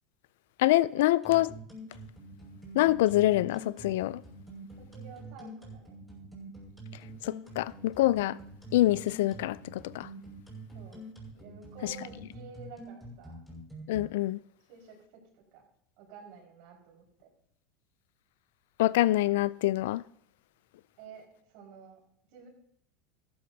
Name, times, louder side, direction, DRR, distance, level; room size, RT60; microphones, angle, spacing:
voice 1, 0.6-1.5 2.7-4.2 7.2-8.4 8.7-10.1 13.9-14.4 18.8-20.0, left 16 dB, 75° left, 0.4 m, -25 dB
sound 1, 1.2-14.1, right 2 dB, ahead, 5.8 m, -46 dB
voice 2, 4.8-6.0 10.7-11.0 11.3-13.4 14.7-15.6 16.0-17.3 21.0-22.0 22.3-22.5, right 5 dB, 65° right, 5.1 m, -50 dB
14.5 x 12.0 x 2.8 m
supercardioid pair, 115°, 0 cm